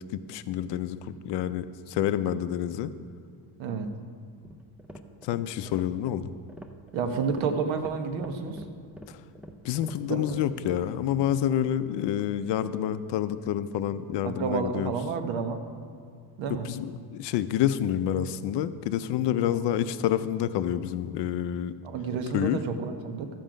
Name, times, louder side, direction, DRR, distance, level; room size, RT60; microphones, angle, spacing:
voice 1, 0.1-2.9 5.2-6.3 9.1-9.2 9.6-14.9 16.6-21.7 22.3-22.6, left 10 dB, 60° left, 12 dB, 0.6 m, -28 dB
sound 1, 4.3-10.9, equal, 5° right, 0.3 m, -46 dB
voice 2, 6.9-8.6 10.1-10.4 14.2-15.6 16.4-16.7 19.5-19.6 21.8-23.3, right 5 dB, 70° right, 7 dB, 1.2 m, -30 dB
13.0 x 7.7 x 5.1 m, 2.3 s
cardioid pair, 140°, 47 cm